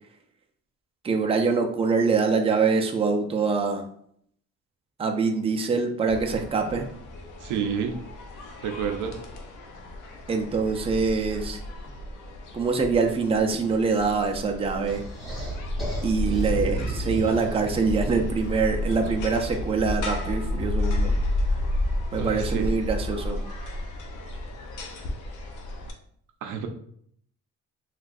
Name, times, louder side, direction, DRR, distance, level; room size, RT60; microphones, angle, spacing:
voice 1, 1.0-3.8 5.0-6.9 10.3-11.6 12.5-15.0 16.0-21.1 22.1-23.4, right 4 dB, 20° right, 3 dB, 0.5 m, -24 dB
sound 1, 6.1-25.9, left 1 dB, 80° left, 0.7 m, -31 dB
voice 2, 7.4-8.0 8.6-9.2 22.2-22.7 26.4-26.7, right 7 dB, 80° right, 5 dB, 0.5 m, -29 dB
sound 2, 14.9-18.4, right 1 dB, ahead, 1.4 m, -34 dB
3.8 x 2.4 x 2.5 m, 0.65 s
cardioid pair, 90°, 30 cm